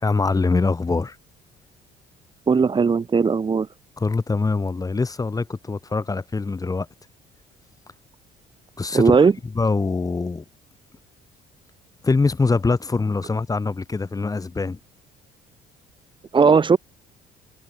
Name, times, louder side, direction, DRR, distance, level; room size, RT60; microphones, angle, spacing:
voice 1, 0.0-1.2 4.0-6.9 8.8-9.2 9.6-10.4 12.0-14.8, left 3 dB, 20° left, 4.1 m, -23 dB
voice 2, 2.5-3.7 8.9-9.3 16.3-16.8, right 5 dB, 30° right, 2.5 m, -17 dB
cardioid pair, 110°, 17 cm